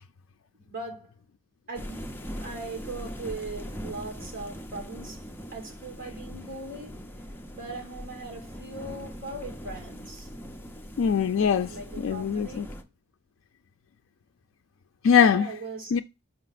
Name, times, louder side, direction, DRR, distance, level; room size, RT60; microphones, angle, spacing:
voice 1, 0.6-1.2 1.7-5.2 5.5-7.0 7.5-10.3 11.7-12.7 15.3-15.9, right 3 dB, 40° right, 2.3 m, -39 dB
sound 1, 1.7-12.8, equal, 10° left, 0.6 m, -41 dB
voice 2, 11.0-12.7 15.0-15.5 15.9-16.0, left 7 dB, 75° left, 0.3 m, -22 dB
5.8 x 4.9 x 4.0 m
head